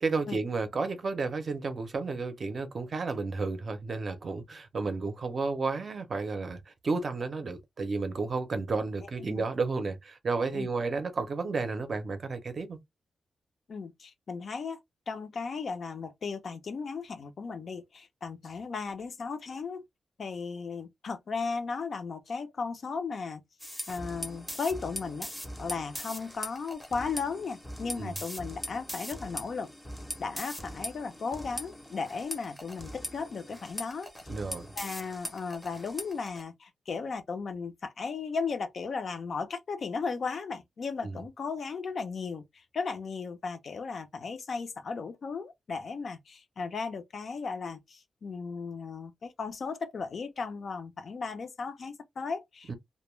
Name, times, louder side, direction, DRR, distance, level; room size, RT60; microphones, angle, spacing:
voice 1, 0.0-12.8 27.9-28.1 34.3-34.7 41.0-41.2 52.7-52.8, right 4 dB, 40° right, 0.5 m, -32 dB
voice 2, 13.7-14.8 15.1-19.8 20.2-23.4 23.9-25.3 25.6-29.7 30.2-34.3 34.8-52.7, left 5 dB, 50° left, 0.5 m, -36 dB
sound 1, 23.6-36.4, left 1 dB, 5° left, 0.6 m, -41 dB
2.2 x 2.1 x 3.1 m
wide cardioid pair, 165°, 0 cm